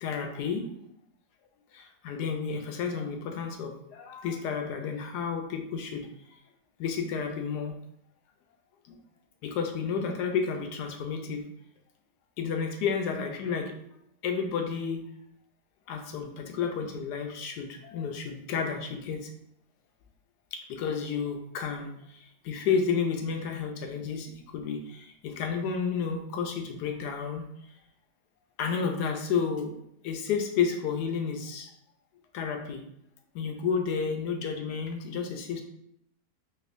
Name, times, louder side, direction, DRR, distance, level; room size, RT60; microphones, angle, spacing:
voice 1, 0.0-0.6 1.7-6.1 6.8-7.7 9.4-11.4 12.4-13.7 14.2-15.0 15.9-19.2 20.5-21.9 22.4-24.3 24.5-27.4 28.6-29.7 30.0-31.7 32.3-32.8 33.3-35.6, left 6 dB, 80° left, 4 dB, 1.1 m, -31 dB
4.2 x 2.5 x 2.5 m, 0.73 s
omnidirectional pair, 1.8 m